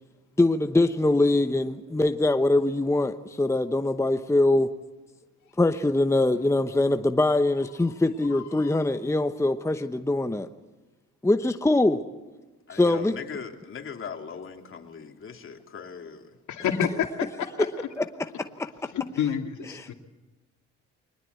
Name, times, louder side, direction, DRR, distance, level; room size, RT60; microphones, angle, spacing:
voice 1, 0.4-4.7 5.6-10.5 11.2-12.0 12.7-13.2 19.7-19.9, left 2 dB, 10° left, 8 dB, 0.9 m, -23 dB
voice 2, 8.3-8.7 16.5-17.1 17.4-17.7 18.9-19.9, left 8 dB, 70° left, 4 dB, 2.4 m, -29 dB
voice 3, 12.7-16.4, left 6 dB, 45° left, 3 dB, 3.1 m, -39 dB
23.0 x 20.0 x 8.2 m, 1.1 s
cardioid pair, 90°, 30 cm